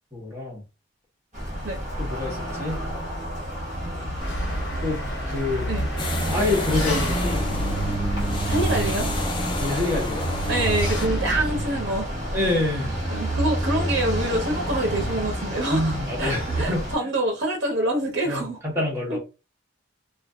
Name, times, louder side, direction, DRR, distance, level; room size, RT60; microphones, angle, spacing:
voice 1, 0.1-0.6 2.0-2.9 4.8-5.7 6.2-7.9 9.5-10.3 12.3-13.0 15.7-16.8 18.2-19.2, left 2 dB, 15° right, 1.1 m, -27 dB
sound 1, 1.3-16.9, right 1 dB, 35° right, 1.1 m, -28 dB
Engine, 4.2-11.6, equal, 70° left, 1.1 m, -32 dB
sound 2, 6.0-11.1, left 2 dB, 25° left, 0.4 m, -33 dB
voice 2, 8.5-9.1 10.5-12.1 13.1-18.6 19.1-19.2, right 1 dB, 65° right, 0.6 m, -26 dB
2.5 x 2.4 x 2.2 m
head